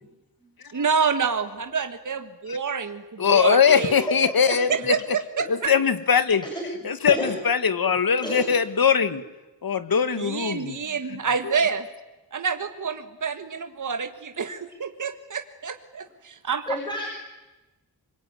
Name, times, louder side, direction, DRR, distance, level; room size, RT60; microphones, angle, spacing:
voice 1, 0.7-4.0 4.5-5.7 10.2-11.9 12.3-16.8, right 6 dB, 50° right, 7 dB, 1.7 m, -28 dB
voice 2, 3.2-4.9 5.5-6.4 6.8-9.2 9.6-10.8, left 7 dB, 65° left, 11 dB, 1.9 m, -21 dB
voice 3, 7.1-7.4 8.2-8.5 10.8-11.0 16.7-17.1, left 1 dB, 10° left, -1 dB, 6.9 m, -30 dB
26.0 x 23.0 x 9.6 m, 1.1 s
wide cardioid pair, 90°, 38 cm